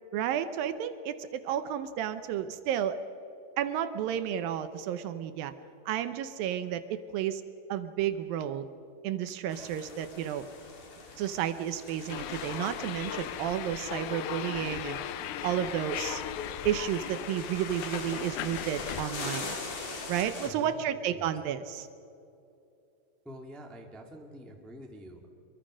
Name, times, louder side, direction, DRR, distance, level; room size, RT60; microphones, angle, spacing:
voice 1, 0.1-3.0 3.6-5.5 5.9-7.4 7.7-8.7 9.0-10.4 11.2-15.0 15.4-16.2 16.6-19.5 20.1-21.9, right 10 dB, 75° right, 11 dB, 2.4 m, -32 dB
sound 1, 9.5-20.5, left 3 dB, 55° left, 4.1 m, -43 dB
sound 2, 12.1-19.1, left 10 dB, 75° left, 1.9 m, -37 dB
voice 2, 20.4-21.3 23.2-25.3, equal, ahead, 2 dB, 0.4 m, -47 dB
25.5 x 23.5 x 6.3 m, 2.7 s
omnidirectional pair, 4.4 m